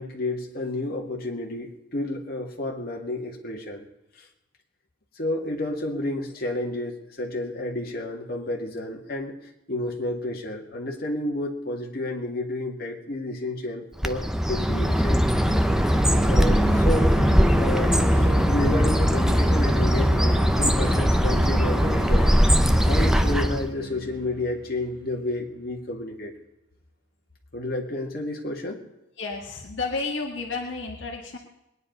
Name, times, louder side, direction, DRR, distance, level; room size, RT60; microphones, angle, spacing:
voice 1, 0.0-3.9 5.2-9.4 9.7-15.2 16.1-17.1 17.5-22.4 22.9-26.3 27.5-28.8, left 1 dB, 50° left, 0 dB, 2.2 m, -31 dB
Bird, 14.0-23.7, equal, 5° right, 0.6 m, -20 dB
sound 1, 15.2-25.2, right 1 dB, 85° right, 3.5 m, -32 dB
voice 2, 29.2-31.4, left 3 dB, 70° left, 1 dB, 1.7 m, -31 dB
21.0 x 10.0 x 5.4 m, 0.91 s
head